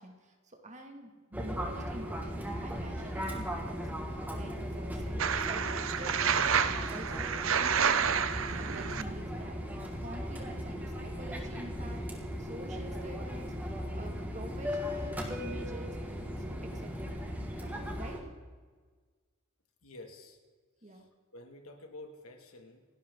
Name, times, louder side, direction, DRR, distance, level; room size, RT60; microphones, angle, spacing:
voice 1, 0.0-6.5 6.9-8.2 8.6-9.6 10.0-13.6 13.9-16.0 16.5-17.2 17.6-18.3 20.8-21.0, right 1 dB, 35° right, 3 dB, 2.4 m, -47 dB
Fixed-wing aircraft airplane, 1.3-18.2, equal, 10° right, 2.1 m, -37 dB
sound 1, 5.2-9.0, right 7 dB, 70° right, 0.9 m, -29 dB
voice 2, 19.8-20.4 20.8-22.9, left 2 dB, 80° left, 4 dB, 2.5 m, -50 dB
28.5 x 12.0 x 4.0 m, 1.5 s
head